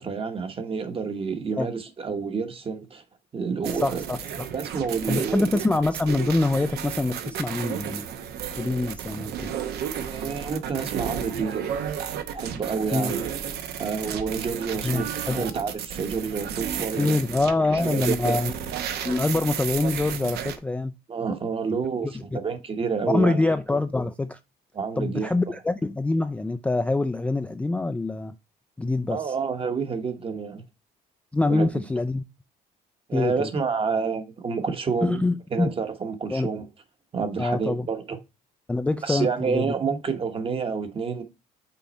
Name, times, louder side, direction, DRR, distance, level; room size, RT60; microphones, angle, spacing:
voice 1, 0.0-3.0 3.3-4.0 4.5-5.6 10.0-11.8 12.3-13.2 13.8-17.2 17.7-18.4 21.1-23.4 24.7-25.6 29.1-30.6 31.4-31.8 33.1-35.2 35.5-36.7 37.1-38.2 39.0-41.2, right 5 dB, 35° right, 1.1 m, -29 dB
sound 1, 3.6-20.6, right 8 dB, 75° right, 0.9 m, -33 dB
voice 2, 3.8-4.2 5.1-8.1 8.5-9.5 12.9-13.1 14.8-15.5 17.0-18.5 19.0-20.9 22.0-22.1 23.1-24.4 25.0-28.3 28.8-29.3 31.3-32.2 33.1-33.5 35.0-35.7 36.3-36.5 37.4-37.9 38.7-39.7, left 2 dB, 10° left, 0.3 m, -25 dB
5.7 x 3.9 x 4.2 m
cardioid pair, 110°, 17 cm